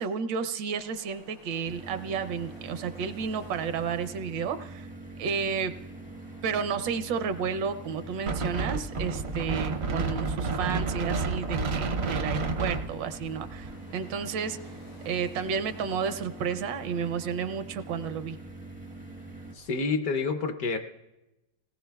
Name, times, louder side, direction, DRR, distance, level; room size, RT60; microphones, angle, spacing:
voice 1, 0.0-4.9 5.2-5.7 6.4-14.6 15.0-18.4, right 6 dB, 75° right, 9 dB, 1.3 m, -32 dB
sound 1, 0.7-19.8, left 1 dB, 85° left, 7.4 m, -55 dB
sound 2, 1.6-19.6, right 2 dB, 10° right, 0.4 m, -44 dB
Wind, 8.3-13.8, right 3 dB, 60° right, 0.7 m, -30 dB
voice 2, 19.5-20.8, left 4 dB, 65° left, 7 dB, 1.0 m, -28 dB
26.5 x 18.0 x 2.3 m, 0.99 s
omnidirectional pair, 2.0 m